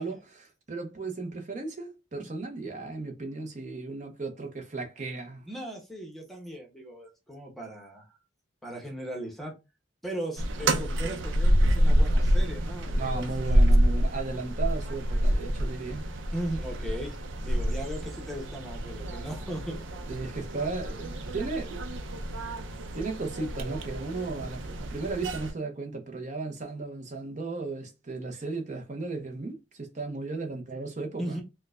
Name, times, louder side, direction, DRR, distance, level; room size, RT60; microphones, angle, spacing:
voice 1, 0.0-5.4 13.0-16.1 20.1-21.8 22.9-31.4, right 3 dB, 40° right, 0.6 m, -35 dB
voice 2, 5.4-8.1 8.6-9.5 10.0-13.6 16.3-19.8 31.2-31.4, right 1 dB, ahead, 0.7 m, -38 dB
sound 1, 10.4-25.5, equal, 85° right, 0.6 m, -27 dB
4.4 x 2.1 x 2.4 m
head